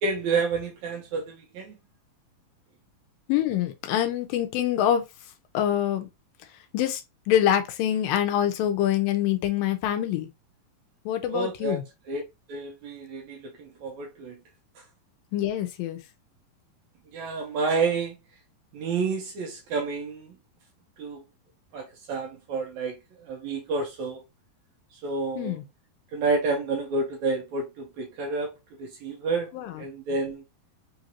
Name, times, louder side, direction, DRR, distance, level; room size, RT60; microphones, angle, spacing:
voice 1, 0.0-1.8 11.3-11.8 12.1-12.2 12.5-14.4 17.1-18.2 18.7-20.3 21.0-21.2 21.7-24.2 25.0-25.6 26.1-28.5 28.8-29.5 29.8-30.4, right 4 dB, 70° right, 1.9 m, -29 dB
voice 2, 3.3-5.0 5.5-6.1 6.7-7.0 7.3-10.3 11.1-11.8 15.3-16.0 25.4-25.6 29.5-29.7, left 11 dB, 80° left, 2.4 m, -25 dB
5.6 x 2.6 x 2.9 m
omnidirectional pair, 4.0 m